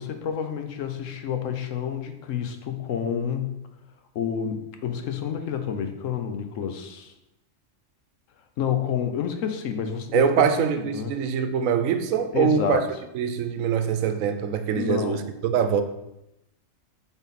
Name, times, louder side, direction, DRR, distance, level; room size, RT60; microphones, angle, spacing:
voice 1, 0.0-3.6 4.1-7.1 8.6-10.5 10.8-11.1 12.3-12.9 14.7-15.3, left 8 dB, 80° left, 1.1 m, -29 dB
voice 2, 10.1-12.8 13.1-15.8, right 7 dB, 85° right, 1.0 m, -23 dB
7.1 x 4.1 x 4.1 m
omnidirectional pair, 1.3 m